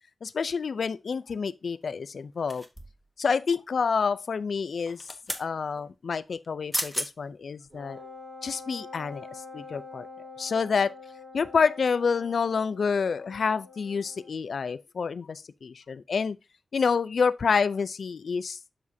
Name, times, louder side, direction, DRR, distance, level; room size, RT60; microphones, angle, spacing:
voice 1, 0.2-2.6 3.2-5.0 5.4-8.0 8.4-9.3 9.5-10.1 10.4-11.0 11.3-16.4 16.7-18.6, left 5 dB, 75° left, 0.4 m, -28 dB
sound 1, 2.5-3.1 4.8-5.5 6.4-6.5 6.7-7.1 7.6-7.8, equal, ahead, 1.1 m, -33 dB
Wind instrument woodwind instrument, 7.7-14.4, left 3 dB, 25° right, 2.5 m, -46 dB
7.3 x 6.0 x 2.7 m
wide cardioid pair, 105°, 0 cm